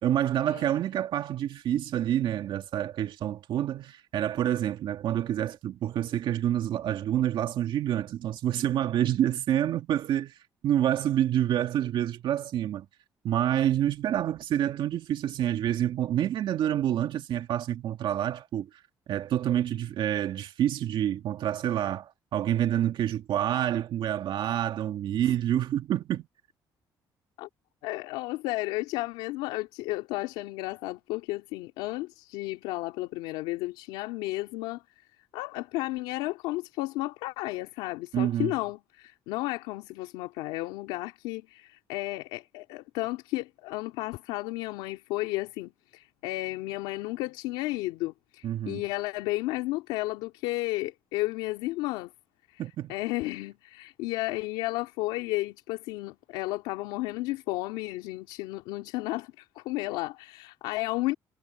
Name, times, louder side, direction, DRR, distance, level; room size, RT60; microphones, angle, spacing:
voice 1, 0.0-10.4 10.6-12.9 13.2-18.8 19.1-26.3 38.1-38.5 48.4-48.8 52.6-52.9, right 11 dB, 70° right, 2.0 m, -28 dB
voice 2, 27.8-34.8 35.3-52.1 52.5-52.6 52.9-61.1, left 19 dB, 90° left, 2.4 m, -33 dB
supercardioid pair, 65°, 9 cm